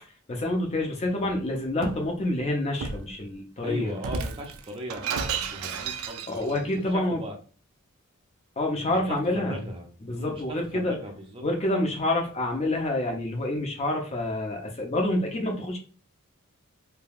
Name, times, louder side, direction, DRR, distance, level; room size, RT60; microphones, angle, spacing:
voice 1, 0.3-4.0 6.3-7.2 8.6-9.6 10.0-11.0 11.4-15.8, left 1 dB, 30° left, 1 dB, 0.5 m, -27 dB
Shatter, 1.2-2.1 2.8-3.1 4.0-6.6, right 5 dB, 75° right, 0.4 m, -33 dB
voice 2, 3.6-7.4 9.1-10.4 10.7-11.4, right 1 dB, 25° right, 1 dB, 0.5 m, -39 dB
3.2 x 2.2 x 2.3 m, 0.37 s
head